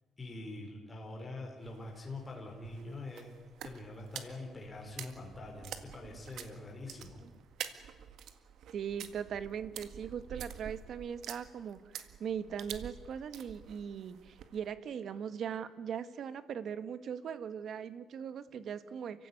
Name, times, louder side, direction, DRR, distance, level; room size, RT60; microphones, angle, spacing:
voice 1, 0.2-3.3 3.6-7.2, left 2 dB, 20° left, 0 dB, 4.5 m, -44 dB
sound 1, 1.6-14.7, right 9 dB, 70° right, 1.8 m, -48 dB
voice 2, 8.7-19.3, right 8 dB, 55° right, 12 dB, 1.4 m, -40 dB
29.0 x 16.0 x 9.9 m, 1.4 s
cardioid pair, 150°, 0 cm